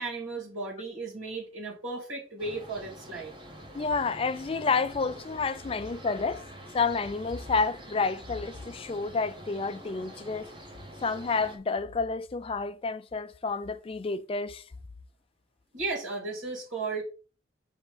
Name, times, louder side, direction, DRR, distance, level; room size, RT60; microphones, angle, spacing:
voice 1, 0.0-3.3 15.7-17.0, right 3 dB, 90° right, 2.5 m, -35 dB
sound 1, 2.4-11.6, right 1 dB, 25° right, 1.1 m, -46 dB
voice 2, 3.7-6.4 6.7-10.5 11.0-14.6, left 4 dB, 30° left, 0.4 m, -30 dB
5.3 x 3.5 x 5.1 m
head